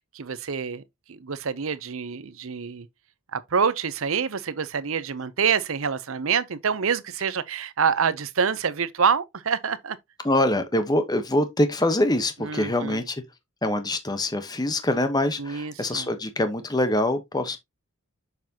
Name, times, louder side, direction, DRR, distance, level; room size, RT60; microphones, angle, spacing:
voice 1, 0.1-0.8 1.1-2.9 3.3-10.0 12.4-13.0 15.4-16.1, right 6 dB, 70° right, 0.7 m, -26 dB
voice 2, 10.2-13.2 13.6-17.6, left 1 dB, 20° left, 1.0 m, -24 dB
7.0 x 6.0 x 2.8 m
head